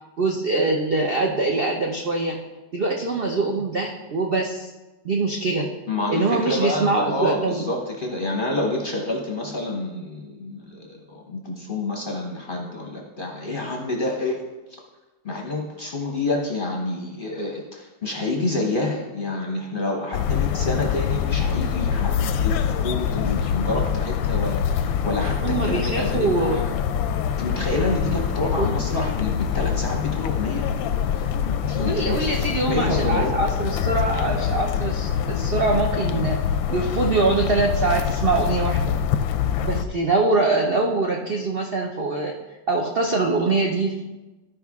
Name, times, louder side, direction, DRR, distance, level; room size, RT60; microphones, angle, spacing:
voice 1, 0.2-2.4 2.7-4.7 5.0-5.7 6.1-7.7 23.2-23.4 25.4-26.6 28.1-28.2 28.5-28.7 31.8-36.4 36.7-38.9 39.6-42.3 42.7-44.2, right 3 dB, 80° right, 0 dB, 0.5 m, -23 dB
voice 2, 5.9-14.4 15.2-26.7 27.4-30.7 31.1-32.3 32.7-33.3, left 2 dB, 40° left, 0 dB, 0.8 m, -28 dB
sound 1, 20.1-39.8, left 8 dB, 90° left, 1.3 m, -25 dB
13.5 x 5.1 x 3.6 m, 1.1 s
omnidirectional pair, 2.0 m